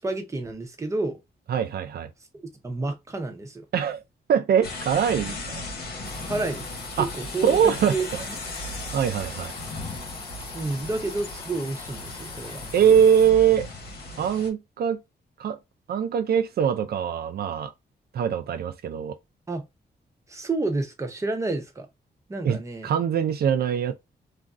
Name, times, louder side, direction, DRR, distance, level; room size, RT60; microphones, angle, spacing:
voice 1, 0.0-1.2 2.3-3.6 6.3-6.7 7.0-8.4 10.5-12.6 19.5-19.6 20.3-21.9 22.3-22.9, right 2 dB, 15° right, 0.6 m, -30 dB
voice 2, 1.5-2.1 3.7-4.0 4.3-5.6 7.0-7.1 7.4-7.9 8.9-9.5 12.7-13.7 14.2-15.0 15.4-15.6 15.9-17.7 18.1-19.2 22.4-22.6 22.8-23.9, right 8 dB, 65° right, 0.4 m, -22 dB
sound 1, 4.6-14.5, left 2 dB, 70° left, 1.4 m, -37 dB
sound 2, 6.0-13.3, left 4 dB, 25° left, 0.4 m, -42 dB
3.1 x 2.5 x 2.3 m
wide cardioid pair, 165°, 18 cm